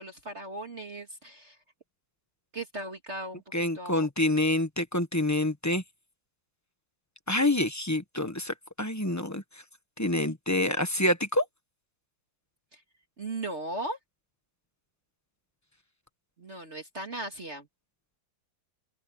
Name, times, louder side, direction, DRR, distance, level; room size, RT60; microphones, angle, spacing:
voice 1, 0.0-1.6 2.5-3.4 3.7-4.1 12.7-12.8 13.2-14.0 16.4-17.7, right 2 dB, 35° right, 2.5 m, -37 dB
voice 2, 3.5-5.8 7.3-9.4 10.0-11.4, left 1 dB, 10° left, 0.9 m, -27 dB
open air
omnidirectional pair, 2.2 m